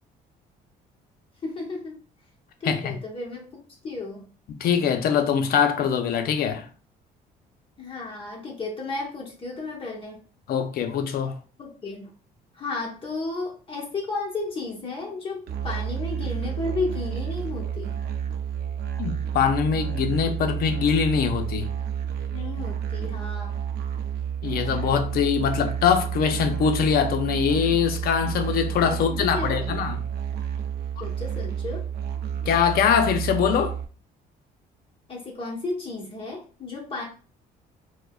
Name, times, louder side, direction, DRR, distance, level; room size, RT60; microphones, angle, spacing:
voice 1, 1.4-2.0 2.6-3.5 3.8-4.3 7.8-10.2 11.6-12.1 12.5-18.0 22.3-23.6 28.8-29.7 30.0-30.1 31.0-31.9 35.1-37.1, left 3 dB, 30° left, 1.1 m, -33 dB
voice 2, 4.6-6.7 10.5-11.4 19.0-21.7 24.4-30.0 31.0-31.1 32.5-33.8, left 7 dB, 65° left, 0.6 m, -23 dB
Musical instrument, 15.5-33.8, right 8 dB, 70° right, 0.5 m, -30 dB
4.7 x 2.1 x 2.3 m
cardioid pair, 110°, 17 cm